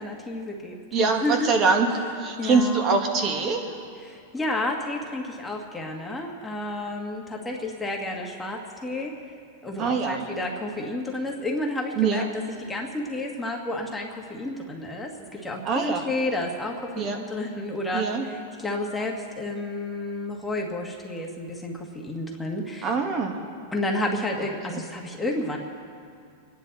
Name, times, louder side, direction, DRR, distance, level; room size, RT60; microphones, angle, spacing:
voice 1, 0.0-1.6 2.4-2.8 4.0-9.1 9.6-12.2 12.7-22.9 23.7-25.6, left 1 dB, 10° left, 0 dB, 1.7 m, -31 dB
voice 2, 0.9-1.9 2.2-3.7 9.8-10.2 11.9-12.3 15.6-16.0 17.0-17.2 17.9-18.3 22.8-23.4 24.7-24.8, right 4 dB, 35° right, 3 dB, 1.8 m, -23 dB
26.5 x 10.5 x 4.1 m, 2.4 s
supercardioid pair, 135°, 0 cm